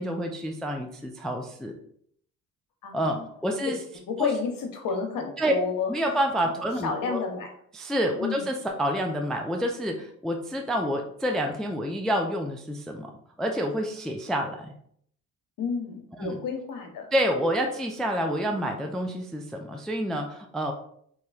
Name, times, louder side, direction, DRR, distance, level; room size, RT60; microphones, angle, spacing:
voice 1, 0.0-1.7 2.9-3.8 4.2-4.3 5.4-5.5 5.9-7.2 7.7-13.1 13.4-14.7 16.2-16.4 17.1-20.7, equal, ahead, 3 dB, 0.3 m, -28 dB
voice 2, 2.8-3.3 3.6-3.7 4.1-5.9 6.8-7.5 8.2-8.5 15.6-17.1, left 5 dB, 60° left, 3 dB, 0.8 m, -31 dB
3.0 x 2.7 x 2.4 m, 0.65 s
supercardioid pair, 60°, 37 cm